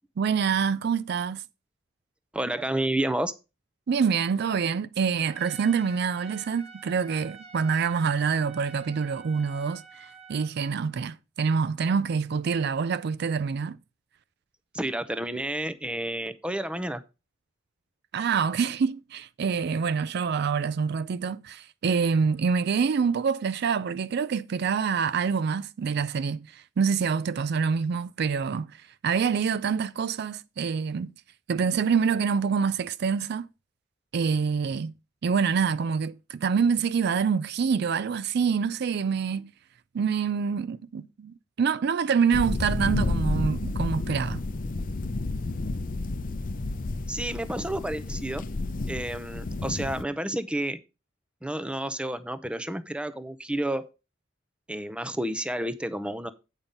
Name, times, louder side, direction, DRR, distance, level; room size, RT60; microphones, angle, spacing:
voice 1, 0.2-1.4 3.9-13.8 18.1-28.7 29.0-31.1 31.5-33.5 34.1-34.9 35.2-39.5 39.9-44.4, right 6 dB, 60° right, 0.4 m, -26 dB
voice 2, 2.3-3.3 14.7-17.0 47.1-48.4 48.9-50.8 51.4-53.9 54.7-56.3, right 1 dB, 5° right, 0.6 m, -30 dB
Trumpet, 5.3-10.5, right 5 dB, 35° right, 1.4 m, -48 dB
sound 1, 42.3-50.0, left 2 dB, 45° left, 0.6 m, -30 dB
8.8 x 5.5 x 5.2 m
head